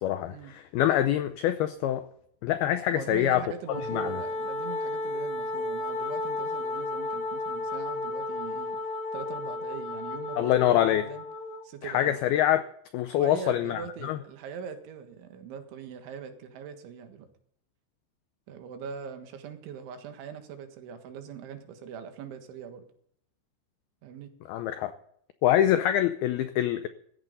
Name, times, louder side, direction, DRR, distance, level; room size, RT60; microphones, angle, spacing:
voice 1, 0.0-2.0 2.4-3.4 3.9-4.2 10.4-11.1 11.8-12.7 12.9-14.2 24.5-24.9 25.4-26.9, left 12 dB, 85° left, 2.2 m, -25 dB
voice 2, 2.9-8.8 9.1-11.3 11.6-12.2 13.2-17.3 18.5-22.9 24.0-24.3, right 7 dB, 80° right, 4.0 m, -42 dB
Wind instrument woodwind instrument, 3.7-11.7, left 2 dB, 60° left, 2.8 m, -33 dB
17.5 x 14.5 x 4.1 m
omnidirectional pair, 5.3 m